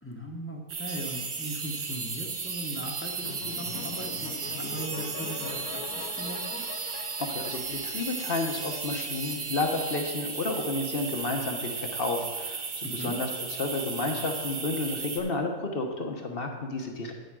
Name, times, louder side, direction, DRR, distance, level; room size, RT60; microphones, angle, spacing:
voice 1, 0.0-4.3 4.6-6.6 12.8-13.1, equal, 10° left, 1 dB, 0.9 m, -39 dB
sound 1, 0.7-15.2, right 5 dB, 70° right, 1.7 m, -36 dB
sound 2, 0.9-10.7, right 4 dB, 35° right, 1.5 m, -42 dB
sound 3, 3.2-8.7, left 9 dB, 75° left, 1.0 m, -42 dB
voice 2, 7.2-17.1, left 3 dB, 40° left, 3 dB, 1.0 m, -31 dB
8.7 x 7.0 x 6.2 m, 1.4 s
omnidirectional pair, 1.7 m